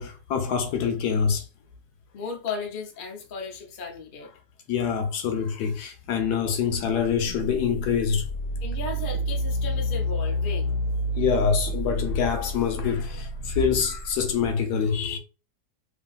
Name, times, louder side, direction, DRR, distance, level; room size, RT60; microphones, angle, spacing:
voice 1, 0.0-1.4 4.7-8.2 11.2-15.2, left 6 dB, 75° left, 1.1 m, -25 dB
voice 2, 2.1-4.3 8.6-10.7, left 4 dB, 55° left, 0.5 m, -35 dB
sound 1, 7.2-14.5, equal, 90° left, 1.4 m, -30 dB
2.9 x 2.5 x 2.3 m
omnidirectional pair, 1.9 m